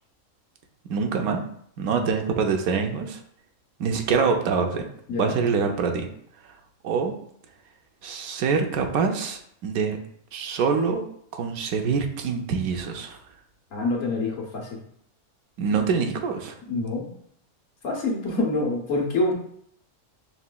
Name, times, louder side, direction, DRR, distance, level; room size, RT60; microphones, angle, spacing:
voice 1, 0.8-1.4 1.8-3.2 3.8-4.8 5.2-6.1 6.8-7.1 8.0-10.0 10.3-11.0 11.3-13.2 15.6-16.5, right 5 dB, 80° right, 4 dB, 1.1 m, -25 dB
voice 2, 13.7-14.7 16.7-17.1 17.8-19.3, left 2 dB, 60° left, -2 dB, 1.3 m, -26 dB
5.7 x 3.1 x 2.2 m, 0.65 s
omnidirectional pair, 1.6 m